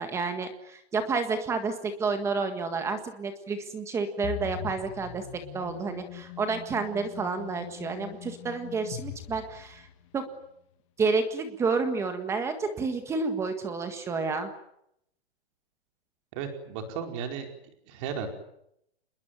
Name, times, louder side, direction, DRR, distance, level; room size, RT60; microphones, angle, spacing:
voice 1, 0.0-5.2 5.5-9.9 10.1-10.2 11.0-14.5, right 4 dB, 10° right, 8 dB, 1.7 m, -30 dB
sound 1, 4.2-10.2, left 13 dB, 30° left, 2.0 m, -41 dB
voice 2, 16.3-17.5 17.9-18.3, right 7 dB, 30° right, 5 dB, 4.8 m, -34 dB
28.0 x 21.5 x 9.1 m, 0.77 s
hypercardioid pair, 170°, 32 cm